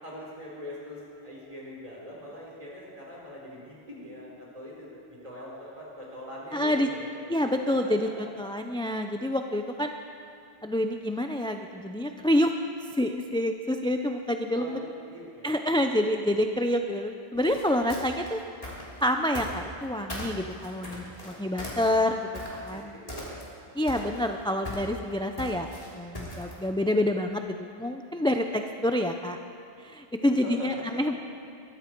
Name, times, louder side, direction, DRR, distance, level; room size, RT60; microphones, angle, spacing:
voice 1, 0.0-7.1 7.7-7.8 8.0-8.1 14.5-15.8 21.2-21.6 22.7-23.4 30.2-31.2, equal, 35° right, -5 dB, 4.5 m, -43 dB
voice 2, 6.5-6.9 7.3-8.1 8.4-9.9 10.6-12.5 13.0-14.8 15.4-18.4 19.0-22.2 22.6-22.9 23.7-25.7 25.9-29.4 29.8-31.1, left 1 dB, 5° left, 5 dB, 0.5 m, -27 dB
sound 1, 17.3-19.8 20.1-22.8 23.1-23.6 23.9-26.6, left 1 dB, 35° left, 3.4 m, -39 dB
22.0 x 14.0 x 4.6 m, 2.5 s
omnidirectional pair, 1.1 m